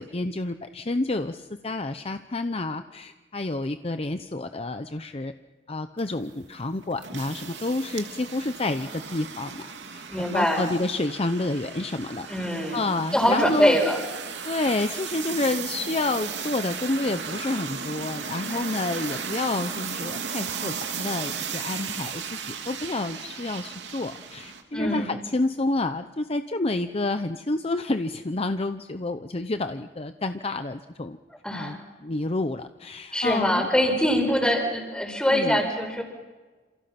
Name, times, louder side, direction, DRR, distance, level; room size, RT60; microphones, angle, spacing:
voice 1, 0.0-5.3 5.7-9.7 9.9-12.3 12.7-13.8 14.4-22.2 22.7-31.2 31.5-31.8 32.0-33.7 35.3-35.6, left 2 dB, 35° left, 9 dB, 0.8 m, -29 dB
sound 1, 6.0-24.6, right 6 dB, 75° right, 2.9 m, -36 dB
voice 2, 10.1-10.7 12.3-12.8 13.1-14.0 24.7-25.1 31.4-31.8 33.1-36.0, equal, 5° left, 3 dB, 5.3 m, -23 dB
28.5 x 28.0 x 6.0 m, 1.3 s
head